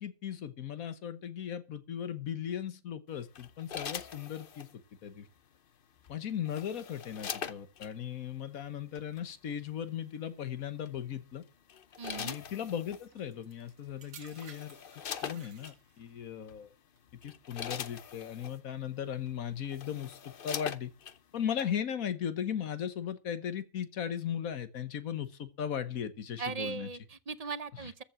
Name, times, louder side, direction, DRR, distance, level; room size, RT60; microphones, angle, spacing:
voice 1, 0.0-4.7 5.0-5.3 6.1-11.4 12.2-14.8 15.2-16.7 17.2-20.9 21.3-26.9 27.8-27.9, left 9 dB, 90° left, 1.6 m, -37 dB
sound 1, 3.3-4.7 6.0-7.9 8.9-9.2 10.9-11.2 11.7-13.1 13.9-14.0 14.3-15.7 16.5-16.6 17.1-18.6 19.3-19.4 19.6-21.2 21.6-21.7, left 7 dB, 50° left, 0.8 m, -42 dB
voice 2, 12.0-12.4 26.4-28.0, right 5 dB, 40° right, 0.6 m, -38 dB
sound 2, 13.1-16.2 17.0-17.3, right 7 dB, 75° right, 1.6 m, -55 dB
14.5 x 7.3 x 6.1 m
omnidirectional pair, 1.4 m